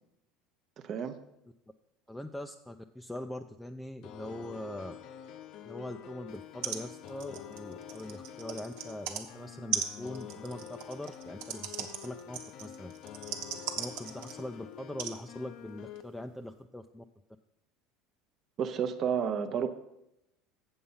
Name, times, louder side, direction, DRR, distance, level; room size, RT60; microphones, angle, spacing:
voice 1, 0.8-1.2 18.6-19.7, right 7 dB, 45° right, 7 dB, 0.7 m, -31 dB
voice 2, 2.1-4.9 5.6-12.9 13.8-17.0, left 1 dB, 5° left, 6 dB, 0.4 m, -42 dB
sound 1, 4.0-16.0, left 10 dB, 60° left, 0.6 m, -47 dB
sound 2, 6.3-6.4 6.6-6.8 7.1-9.2 9.7-14.5 15.0-15.2 16.0-16.1, right 8 dB, 75° right, 1.0 m, -38 dB
7.5 x 7.0 x 5.5 m, 0.87 s
supercardioid pair, 110°, 0 cm